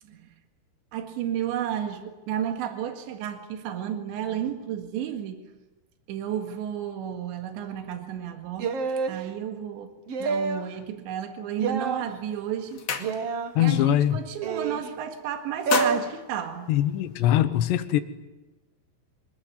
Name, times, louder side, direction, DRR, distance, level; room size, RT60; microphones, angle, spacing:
voice 1, 0.0-0.4 0.9-5.4 6.1-8.8 9.0-9.9 10.2-12.8 13.1-13.3 13.6-16.7, right 9 dB, 85° right, 5 dB, 4.1 m, -32 dB
sound 1, 8.6-9.2 10.1-10.7 11.6-12.0 13.0-13.5 14.4-14.9 15.7-16.0, right 4 dB, 55° right, 1.7 m, -27 dB
sound 2, 11.9-12.1 12.4-13.6 13.9-14.2 14.5-15.1 15.4-17.3, left 6 dB, 45° left, 2.7 m, -32 dB
voice 2, 13.6-14.2 16.7-18.0, left 12 dB, 75° left, 10 dB, 3.5 m, -22 dB
26.0 x 22.0 x 9.7 m, 1.1 s
omnidirectional pair, 5.1 m